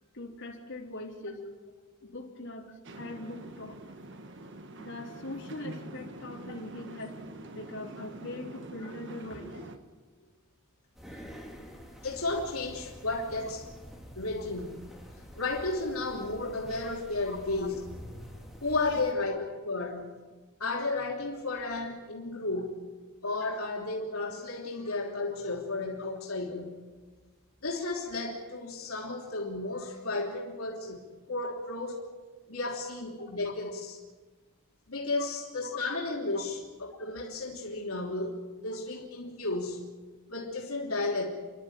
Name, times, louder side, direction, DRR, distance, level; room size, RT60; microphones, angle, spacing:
voice 1, 0.1-1.4 2.0-3.8 4.8-7.2 7.5-9.6 14.4-14.5 17.2-17.7 18.8-19.3 19.8-19.9 22.5-22.7 23.4-23.5 31.4-31.5 32.6-32.7 33.4-33.5 35.2-35.3 35.6-35.7 36.3-36.5 39.5-39.6, left 2 dB, 60° left, -1 dB, 3.7 m, -41 dB
sound 1, 2.8-9.8, right 1 dB, 55° right, 1.6 m, -45 dB
sound 2, 10.9-19.1, equal, ahead, 3.0 m, -47 dB
voice 2, 12.0-13.7 14.1-14.8 15.3-17.8 18.6-20.1 20.6-22.8 23.2-26.8 27.6-31.0 31.3-31.9 32.5-33.8 34.9-38.4 38.6-39.8 40.3-41.2, left 2 dB, 80° left, -2 dB, 3.3 m, -33 dB
30.0 x 12.0 x 9.2 m, 1.3 s
head